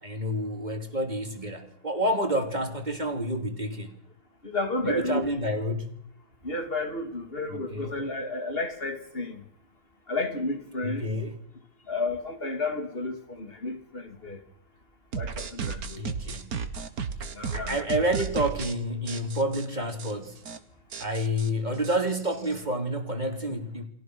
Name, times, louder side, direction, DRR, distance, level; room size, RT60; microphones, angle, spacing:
voice 1, 0.0-3.9 4.8-5.8 7.5-8.0 10.8-11.4 16.0-16.6 17.5-20.4 21.0-23.9, equal, 20° right, 3.0 m, -29 dB
voice 2, 4.4-5.3 6.4-9.4 10.1-11.1 11.9-14.4 15.1-16.0 17.3-17.8, left 2 dB, 30° left, 3.0 m, -32 dB
sound 1, 15.1-18.8 19.1-19.7 20.0-20.1 20.4-20.6 20.9-22.6, right 6 dB, 55° right, 1.8 m, -34 dB
29.5 x 21.5 x 6.2 m
omnidirectional pair, 2.0 m